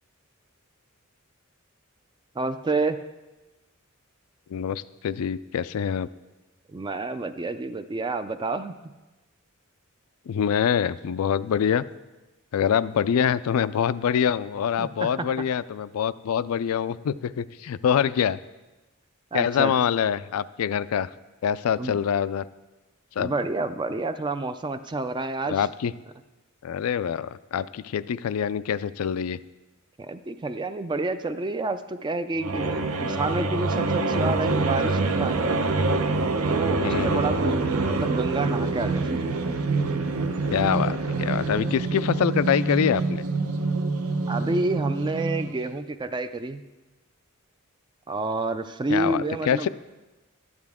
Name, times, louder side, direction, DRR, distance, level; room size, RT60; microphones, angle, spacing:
voice 1, 2.4-3.0 6.7-8.7 14.8-15.3 19.3-19.7 21.8-22.0 23.2-25.7 30.0-35.4 36.5-39.2 44.3-46.6 48.1-49.7, right 2 dB, 20° right, 10 dB, 0.3 m, -29 dB
voice 2, 4.5-6.1 10.3-11.8 12.5-18.4 19.3-21.1 21.4-22.4 23.2-23.3 25.5-25.9 26.6-29.4 36.8-37.4 40.5-43.2 48.9-49.7, left 8 dB, 80° left, 17 dB, 0.4 m, -25 dB
sound 1, 32.4-45.6, right 3 dB, 75° right, 0.8 m, -26 dB
12.5 x 9.7 x 3.6 m, 1.1 s
head